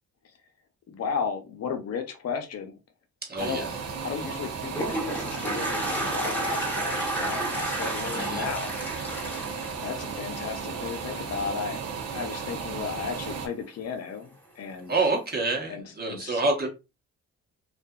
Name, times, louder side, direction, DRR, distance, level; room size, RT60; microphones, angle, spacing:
voice 1, 0.9-2.8 3.4-3.7 4.0-8.7 9.8-11.8 12.1-14.9 15.7-16.4, left 6 dB, 55° left, 6 dB, 0.7 m, -34 dB
voice 2, 3.2-3.7 8.1-8.5 14.9-16.7, right 3 dB, 30° right, 0 dB, 1.0 m, -27 dB
sound 1, 3.4-13.5, right 5 dB, 55° right, 0.7 m, -35 dB
Toilet flush, 4.4-10.7, right 1 dB, 5° left, 1.0 m, -31 dB
2.6 x 2.4 x 2.2 m, 0.27 s
cardioid pair, 90°, 30 cm